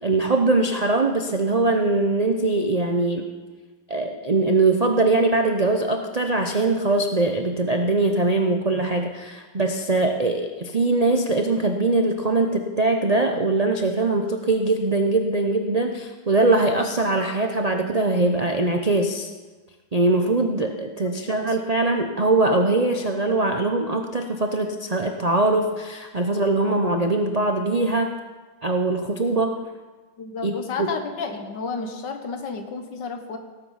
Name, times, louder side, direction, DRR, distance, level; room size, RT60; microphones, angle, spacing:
voice 1, 0.0-3.2 3.9-19.3 19.9-28.1 28.6-29.6 30.4-30.9, right 2 dB, 65° right, 4 dB, 0.3 m, -22 dB
voice 2, 21.2-21.6 30.2-33.4, left 4 dB, 75° left, 6 dB, 1.9 m, -32 dB
18.0 x 8.2 x 5.7 m, 1.3 s
omnidirectional pair, 1.9 m